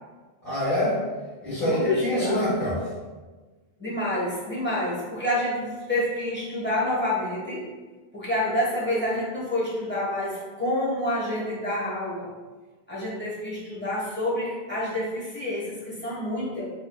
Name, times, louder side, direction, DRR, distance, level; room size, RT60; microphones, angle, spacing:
voice 1, 0.4-1.0 1.4-2.8, left 1 dB, 60° left, -14 dB, 1.8 m, -25 dB
voice 2, 1.6-2.4 3.8-7.7 8.1-12.3 12.9-16.7, left 1 dB, 10° left, -8 dB, 1.3 m, -28 dB
4.4 x 3.4 x 2.3 m, 1.3 s
omnidirectional pair, 1.1 m